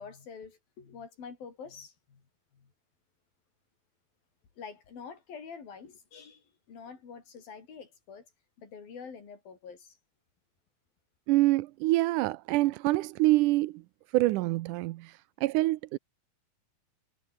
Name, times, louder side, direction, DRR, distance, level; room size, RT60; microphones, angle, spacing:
voice 1, 0.0-2.2 2.5-2.7 4.6-8.3 8.6-10.0, left 6 dB, 85° left, 6.7 m, -46 dB
voice 2, 11.3-13.8 14.1-16.0, right 18 dB, 75° right, 2.0 m, -26 dB
omnidirectional pair, 4.0 m